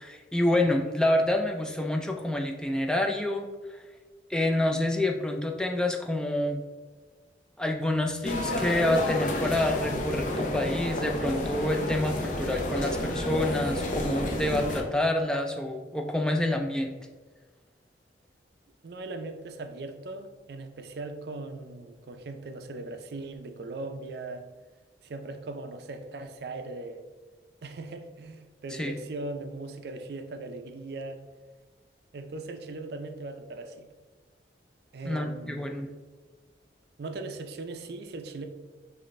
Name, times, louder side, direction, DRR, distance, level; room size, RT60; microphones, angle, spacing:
voice 1, 0.0-3.5 4.3-6.6 7.6-16.9 28.7-28.9 35.1-35.9, left 1 dB, 5° left, 3 dB, 0.3 m, -27 dB
sound 1, 8.2-14.8, left 1 dB, 45° left, 0.6 m, -30 dB
voice 2, 18.8-24.5 25.0-27.0 27.6-31.2 32.1-33.9 34.9-35.8 37.0-38.5, right 2 dB, 60° right, 7 dB, 0.4 m, -39 dB
6.2 x 2.5 x 3.1 m, 1.4 s
head